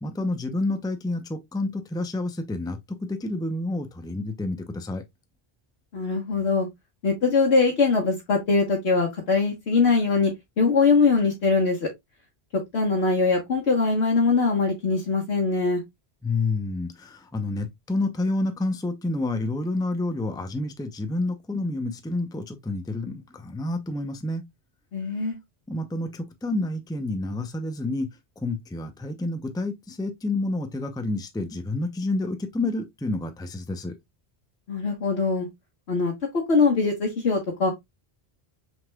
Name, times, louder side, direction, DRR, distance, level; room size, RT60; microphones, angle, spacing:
voice 1, 0.0-5.0 16.2-24.4 25.7-28.1 28.4-33.9, left 2 dB, 5° left, 0.5 m, -29 dB
voice 2, 5.9-6.7 7.0-10.3 10.6-11.9 12.7-15.8 24.9-25.4 34.7-35.5 35.9-37.7, left 4 dB, 90° left, 1.4 m, -22 dB
5.9 x 3.6 x 2.2 m
omnidirectional pair, 1.1 m